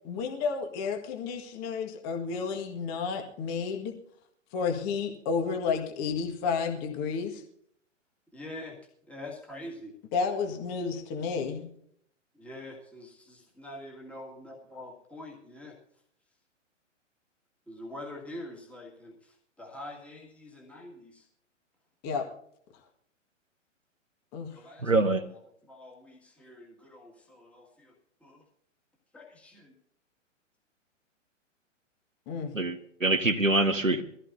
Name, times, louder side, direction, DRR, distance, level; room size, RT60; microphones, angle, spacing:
voice 1, 0.0-3.9 4.5-7.4 10.1-11.7 22.0-22.3 24.3-24.5 32.3-32.5, left 5 dB, 25° left, 1.8 m, -31 dB
voice 2, 8.3-8.8 9.1-9.9 12.3-15.8 17.7-21.3 24.5-25.1 25.7-27.9 28.2-28.4 29.1-29.7, left 1 dB, 5° left, 2.2 m, -45 dB
voice 3, 24.8-25.2 32.5-34.0, right 2 dB, 90° right, 1.4 m, -25 dB
22.5 x 15.0 x 2.7 m
figure-of-eight pair, 115°, 38 cm